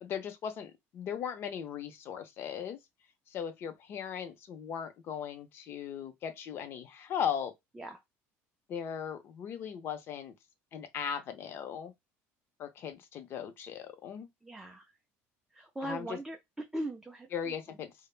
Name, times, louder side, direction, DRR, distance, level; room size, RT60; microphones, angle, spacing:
voice 1, 0.0-2.8 3.3-7.5 8.7-10.3 10.7-11.9 12.6-14.3 15.9-16.1 17.3-17.9, left 8 dB, 45° left, 0.5 m, -38 dB
voice 2, 14.4-14.9 15.5-16.4 16.7-17.8, right 1 dB, 5° right, 0.4 m, -40 dB
3.2 x 2.0 x 2.4 m
cardioid pair, 150°, 6 cm